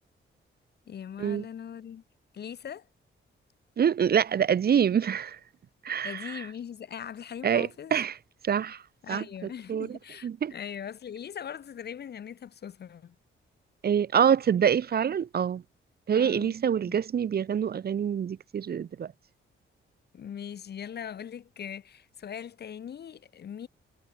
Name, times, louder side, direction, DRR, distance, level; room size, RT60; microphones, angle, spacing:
voice 1, 0.9-2.0 2.3-2.9 6.0-7.9 9.0-13.1 16.1-16.5 16.9-17.0 20.1-23.7, left 8 dB, 50° left, 1.0 m, -40 dB
voice 2, 3.8-5.4 5.8-6.5 7.4-8.2 8.4-8.8 9.1-9.2 9.7-10.5 13.8-15.6 16.1-19.1, right 8 dB, 50° right, 0.9 m, -26 dB
wide cardioid pair, 165°, 21 cm